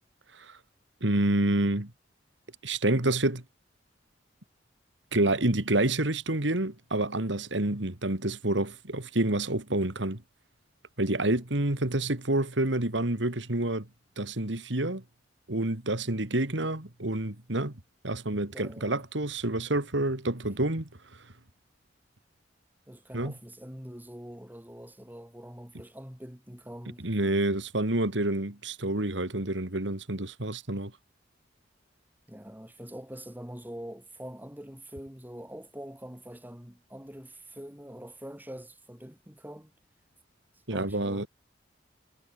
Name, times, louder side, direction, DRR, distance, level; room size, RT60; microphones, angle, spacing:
voice 1, 1.0-1.9 2.6-3.4 5.1-10.2 11.0-13.9 14.2-15.0 15.5-17.7 18.0-20.9 23.1-23.3 27.0-30.9 40.7-41.3, right 1 dB, 70° right, 2.7 m, -28 dB
voice 2, 18.5-19.0 22.9-27.1 32.3-39.7 40.7-41.3, equal, 10° right, 3.6 m, -44 dB
head